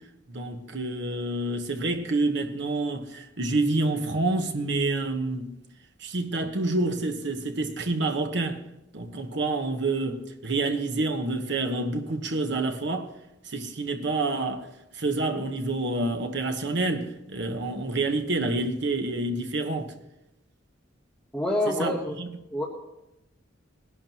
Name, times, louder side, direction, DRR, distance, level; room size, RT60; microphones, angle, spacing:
voice 1, 0.3-5.5 6.0-8.6 8.9-13.1 13.5-14.7 14.9-19.9 21.7-21.9 22.2-22.3, right 2 dB, 65° right, 1.1 m, -28 dB
voice 2, 21.3-22.2 22.5-22.6, left 1 dB, 5° left, 1.1 m, -26 dB
18.5 x 11.0 x 2.9 m
head